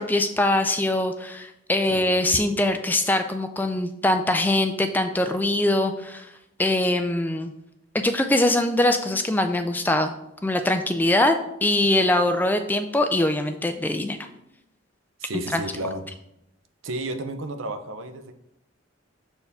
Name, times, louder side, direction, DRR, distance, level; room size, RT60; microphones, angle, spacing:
voice 1, 0.0-6.3 6.6-7.5 7.9-10.1 10.4-11.4 11.6-14.2 15.5-15.6, left 1 dB, 10° left, 7 dB, 0.3 m, -22 dB
voice 2, 15.2-16.1 16.8-18.3, right 1 dB, 80° right, 9 dB, 0.6 m, -32 dB
6.7 x 4.4 x 3.5 m, 0.82 s
head